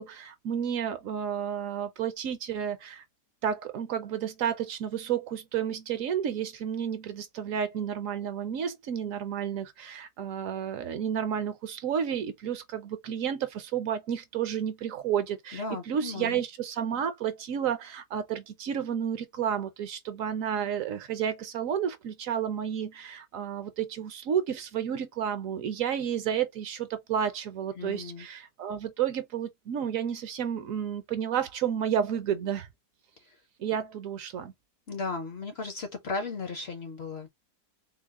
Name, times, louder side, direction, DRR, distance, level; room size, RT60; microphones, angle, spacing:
voice 1, 0.0-3.0 3.4-32.7 33.6-34.5, right 8 dB, 70° right, 0.9 m, -31 dB
voice 2, 15.5-16.4 27.7-28.3 33.3-33.4 34.9-37.3, left 3 dB, 55° left, 0.8 m, -35 dB
3.8 x 2.0 x 3.5 m
omnidirectional pair, 1.6 m